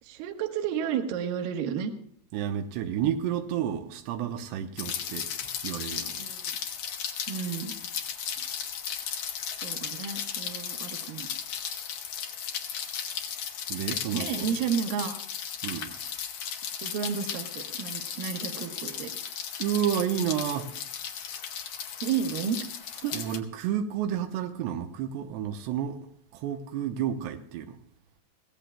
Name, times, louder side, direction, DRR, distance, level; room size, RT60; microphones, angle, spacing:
voice 1, 0.0-1.9 6.1-6.6 7.3-7.7 9.6-11.3 14.1-15.1 16.8-19.1 22.0-22.6 22.9-23.2, right 8 dB, 70° right, 2.5 m, -32 dB
voice 2, 2.3-5.3 5.6-6.2 8.4-8.5 13.7-14.5 15.6-16.0 19.6-20.7 23.1-26.1 26.3-27.8, right 9 dB, 90° right, 2.9 m, -31 dB
Rain, 4.8-23.4, left 8 dB, 70° left, 1.8 m, -35 dB
22.0 x 16.5 x 2.2 m
omnidirectional pair, 4.8 m